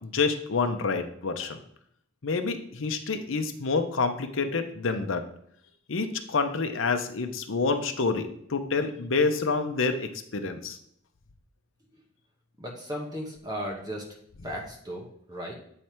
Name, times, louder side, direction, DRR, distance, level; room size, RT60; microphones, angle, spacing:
voice 1, 0.0-1.6 2.2-5.2 5.9-10.8, left 4 dB, 65° left, 7 dB, 0.7 m, -28 dB
voice 2, 12.6-14.0 14.4-15.5, equal, 20° right, -1 dB, 1.0 m, -36 dB
8.8 x 3.3 x 4.4 m, 0.69 s
head